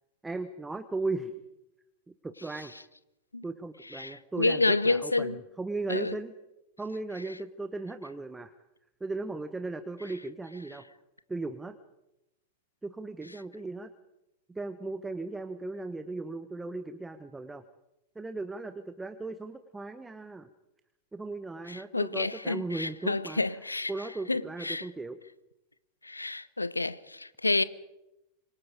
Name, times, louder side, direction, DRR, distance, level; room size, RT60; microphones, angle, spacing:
voice 1, 0.2-1.3 2.1-2.7 3.4-6.3 6.8-8.5 9.0-10.8 11.3-11.8 12.8-13.9 14.5-17.6 18.1-20.5 21.1-23.4 23.9-25.2, right 3 dB, 10° right, 1.0 m, -37 dB
voice 2, 3.9-5.4 5.9-6.1 21.7-23.9 24.3-24.9 26.0-27.6, left 2 dB, 80° left, 0.8 m, -29 dB
26.5 x 23.5 x 5.1 m
figure-of-eight pair, 90°, 0 cm